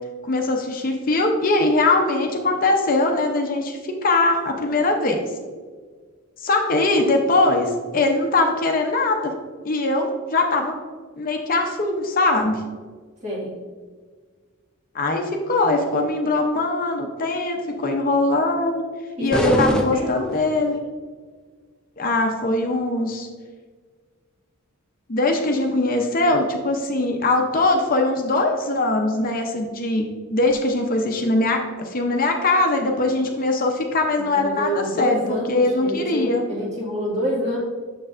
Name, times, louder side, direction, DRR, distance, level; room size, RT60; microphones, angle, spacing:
voice 1, 0.3-5.2 6.4-9.3 9.6-10.8 11.2-12.6 14.9-18.8 19.2-20.8 22.0-23.3 25.1-30.0 30.3-35.2 35.5-36.4, left 2 dB, 40° left, 3 dB, 0.6 m, -21 dB
voice 2, 13.2-13.5 19.2-20.2 34.3-37.6, equal, 35° right, -4 dB, 1.8 m, -26 dB
sound 1, 19.3-20.8, left 2 dB, 5° left, 0.4 m, -25 dB
6.9 x 6.5 x 2.5 m, 1.5 s
head